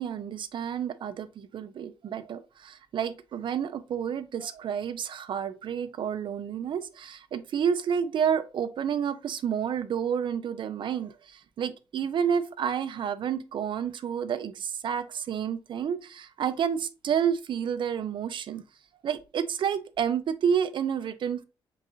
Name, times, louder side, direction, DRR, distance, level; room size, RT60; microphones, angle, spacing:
voice 1, 0.0-18.6 19.0-21.4, right 8 dB, 60° right, 0.4 m, -30 dB
4.2 x 3.8 x 2.5 m
cardioid pair, 110°, 10 cm